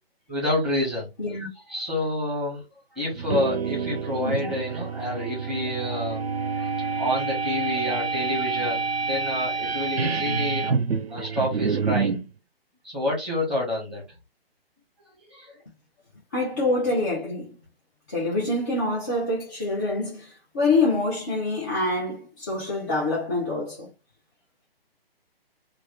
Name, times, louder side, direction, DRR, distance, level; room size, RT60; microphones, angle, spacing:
voice 1, 0.3-1.1 1.7-2.6 2.9-10.8 11.1-12.2 12.8-14.0 15.3-15.6, left 1 dB, ahead, 1.1 m, -28 dB
sound 1, 3.1-12.3, right 5 dB, 80° right, 0.6 m, -28 dB
voice 2, 16.3-17.6 18.1-23.9, left 2 dB, 20° left, 0.6 m, -26 dB
3.2 x 2.4 x 3.3 m
figure-of-eight pair, 140°, 30 cm